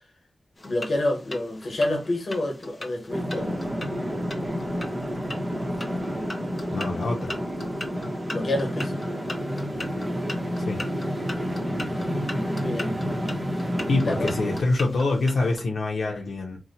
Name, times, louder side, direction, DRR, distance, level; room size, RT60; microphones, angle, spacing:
voice 1, 0.6-3.5 8.3-9.0 12.6-13.0 14.0-14.3, left 1 dB, 55° left, 1.1 m, -28 dB
sound 1, 0.6-15.6, left 1 dB, 25° left, 0.6 m, -41 dB
sound 2, 3.1-14.6, equal, 30° right, 0.7 m, -29 dB
voice 2, 6.7-7.4 10.6-10.8 13.9-16.6, left 3 dB, 85° left, 0.5 m, -25 dB
2.7 x 2.1 x 4.0 m
wide cardioid pair, 135°, 0 cm